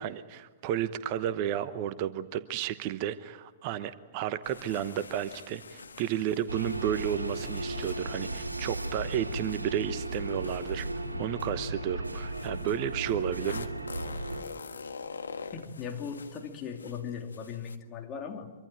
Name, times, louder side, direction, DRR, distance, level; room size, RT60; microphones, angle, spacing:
voice 1, 0.0-13.7, right 11 dB, 40° right, 13 dB, 1.0 m, -32 dB
sound 1, 4.4-11.5 12.2-17.8, left 5 dB, 70° left, 1.6 m, -46 dB
sound 2, 6.5-14.4, right 1 dB, 80° right, 2.4 m, -35 dB
voice 2, 15.5-18.5, left 6 dB, 25° left, 2 dB, 3.2 m, -38 dB
25.5 x 24.5 x 9.0 m, 1.2 s
figure-of-eight pair, 105°, 0 cm